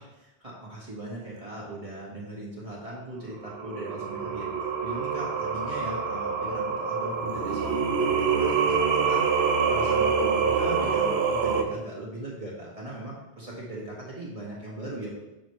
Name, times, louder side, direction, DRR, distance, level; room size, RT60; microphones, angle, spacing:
voice 1, 0.0-4.5 4.8-15.1, right 1 dB, 30° right, -5 dB, 1.6 m, -39 dB
Singing, 3.4-11.6, right 5 dB, 70° right, 0.9 m, -26 dB
6.6 x 6.2 x 3.1 m, 0.97 s
omnidirectional pair, 1.1 m